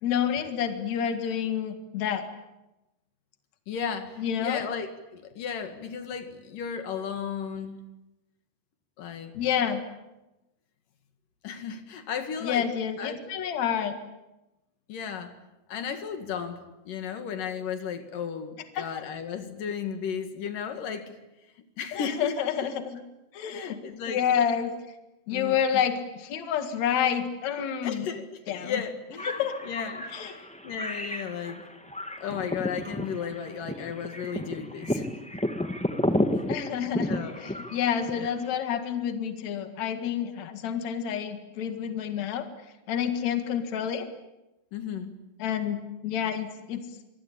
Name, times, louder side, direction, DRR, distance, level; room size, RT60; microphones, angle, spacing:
voice 1, 0.0-2.3 4.2-4.6 9.3-9.8 12.4-14.0 18.8-18.9 21.9-23.0 23.3-23.8 24.1-24.8 25.3-28.1 28.5-28.8 29.2-29.5 30.1-30.3 36.5-42.5 42.9-44.1 45.4-46.9, left 8 dB, 60° left, 7 dB, 3.1 m, -29 dB
voice 2, 3.7-7.8 9.0-9.3 11.4-12.7 13.0-13.2 14.9-15.3 15.7-21.2 21.8-22.4 23.5-24.2 25.3-25.6 27.8-31.6 32.2-35.2 37.1-37.5 38.1-38.4 44.7-45.1, left 7 dB, 85° left, 7 dB, 3.7 m, -35 dB
sound 1, 29.2-38.6, left 1 dB, 5° left, 0.6 m, -32 dB
26.0 x 24.0 x 8.8 m, 0.99 s
omnidirectional pair, 3.7 m